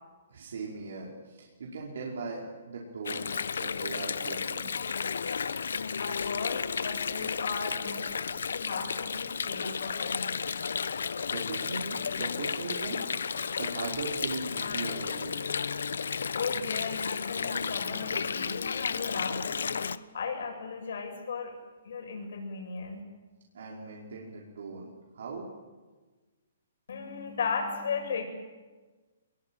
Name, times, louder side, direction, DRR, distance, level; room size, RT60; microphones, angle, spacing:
voice 1, 0.3-3.3 3.6-4.7 11.3-15.4 23.5-25.5, right 3 dB, 65° right, -3 dB, 5.2 m, -39 dB
Water, 3.0-20.0, left 6 dB, 85° left, 1.0 m, -33 dB
voice 2, 6.0-8.1 8.5-10.4 16.3-19.8 20.1-21.5 21.8-23.0 26.9-28.2, left 5 dB, 60° left, 3 dB, 7.5 m, -36 dB
25.0 x 22.0 x 9.2 m, 1.3 s
hypercardioid pair, 175°, 0 cm